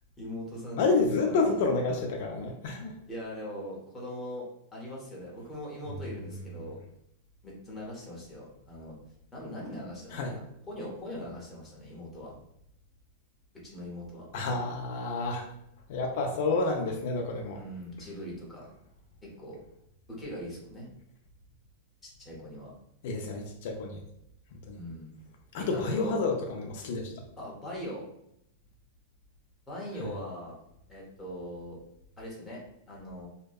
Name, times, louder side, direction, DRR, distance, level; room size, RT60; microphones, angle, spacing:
voice 1, 0.2-0.9 1.2-1.6 3.1-4.4 4.7-6.8 7.4-8.9 9.3-12.3 13.5-14.3 17.5-18.7 19.2-19.6 20.1-20.9 22.0-22.7 24.7-25.1 25.6-26.2 27.4-28.0 29.7-30.5 30.9-31.8 32.2-32.6 32.9-33.3, equal, 10° left, -5 dB, 0.7 m, -41 dB
voice 2, 0.8-2.9 10.1-10.4 14.3-15.5 15.9-17.6 23.0-24.0 24.7-24.8 25.5-27.1 30.0-30.1, left 3 dB, 55° left, 2 dB, 0.3 m, -29 dB
2.6 x 2.1 x 2.3 m, 0.77 s
supercardioid pair, 155°, 0 cm